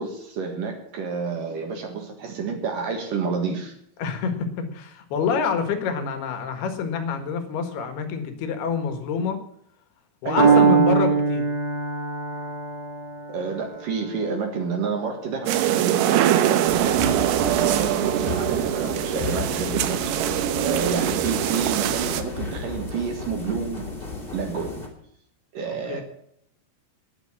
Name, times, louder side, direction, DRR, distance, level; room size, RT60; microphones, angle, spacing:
voice 1, 0.0-3.7 10.2-10.8 12.3-12.4 13.3-17.0 17.6-20.1 20.6-23.9 24.3-24.8 25.5-26.0, right 5 dB, 60° right, 3 dB, 2.9 m, -29 dB
voice 2, 4.0-9.4 10.2-11.5 25.7-26.0, left 6 dB, 75° left, 8 dB, 3.5 m, -27 dB
Piano, 10.4-18.3, right 5 dB, 15° right, 1.4 m, -24 dB
sound 1, 15.5-22.2, right 11 dB, 85° right, 3.0 m, -23 dB
sound 2, 16.7-24.9, left 3 dB, 15° left, 2.7 m, -33 dB
11.0 x 10.0 x 8.7 m, 0.70 s
omnidirectional pair, 4.8 m